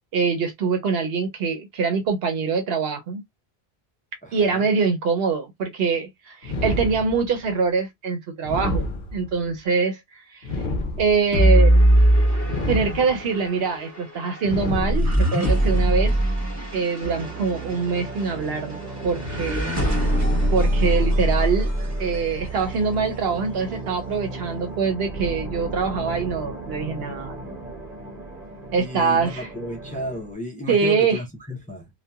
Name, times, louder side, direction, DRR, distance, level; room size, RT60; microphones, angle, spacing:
voice 1, 0.1-3.2 4.3-8.9 9.1-10.0 11.0-11.8 12.7-16.1 16.7-19.9 20.5-21.7 22.0-27.4 28.7-29.5 30.7-31.2, right 5 dB, 70° right, 0.9 m, -24 dB
voice 2, 4.2-4.7 28.8-31.9, equal, 10° left, 0.6 m, -33 dB
sound 1, 6.4-7.5 8.4-9.5 10.4-11.5 12.4-13.5 14.4-15.5, left 2 dB, 55° left, 0.8 m, -29 dB
sound 2, 11.3-22.6, right 1 dB, 15° right, 1.3 m, -22 dB
sound 3, 17.0-30.3, right 3 dB, 40° right, 0.9 m, -35 dB
2.7 x 2.2 x 2.2 m
omnidirectional pair, 1.1 m